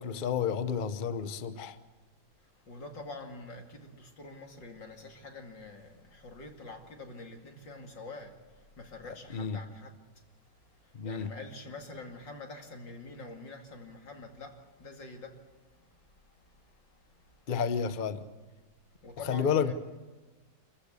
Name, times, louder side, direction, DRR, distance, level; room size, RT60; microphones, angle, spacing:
voice 1, 0.0-1.8 9.3-9.6 10.9-11.3 17.5-18.3 19.3-19.7, left 7 dB, 40° left, 0.7 m, -30 dB
voice 2, 2.6-10.0 10.8-15.4 15.7-15.9 16.5-16.6 17.1-17.4 19.0-19.7, left 3 dB, 65° left, 3.1 m, -46 dB
26.5 x 14.5 x 8.3 m
omnidirectional pair, 2.2 m